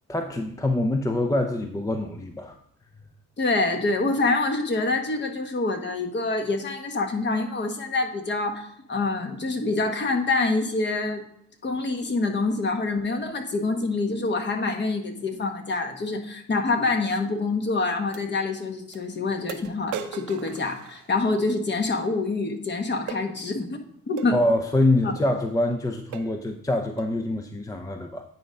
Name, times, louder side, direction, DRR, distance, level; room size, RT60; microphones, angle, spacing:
voice 1, 0.1-2.6 24.3-28.2, left 1 dB, 10° left, 5 dB, 0.6 m, -25 dB
voice 2, 3.4-11.2 11.6-24.4 25.0-25.1, left 3 dB, 35° left, 5 dB, 1.2 m, -26 dB
sound 1, 17.1-17.2 18.1-18.3 18.9-19.0 19.5-21.4 23.1-23.3 24.2-24.4 25.2-25.3 25.7-25.8 26.1-26.4 27.0-27.2, right 8 dB, 75° right, 0.7 m, -38 dB
9.1 x 3.8 x 5.2 m, 0.69 s
cardioid pair, 90°, 30 cm